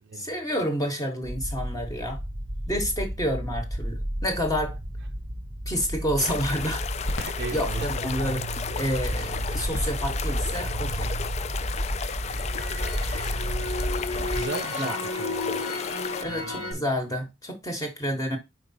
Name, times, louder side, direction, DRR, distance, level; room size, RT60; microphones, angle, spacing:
voice 1, 0.1-2.2 2.7-4.8 5.7-6.8 7.2-8.5 8.8-11.1 12.5-12.7 14.8-15.0 16.2-18.4, equal, 20° left, 1.2 m, -29 dB
sound 1, 1.2-14.5, right 1 dB, 25° right, 0.8 m, -32 dB
sound 2, 6.2-16.2, left 7 dB, 35° left, 0.3 m, -34 dB
Crackle, 7.1-11.2 11.6-16.7, left 2 dB, 85° left, 1.2 m, -34 dB
voice 2, 7.2-7.9 14.3-15.6 16.3-17.0, right 4 dB, 60° right, 0.5 m, -37 dB
4.7 x 4.7 x 4.2 m
head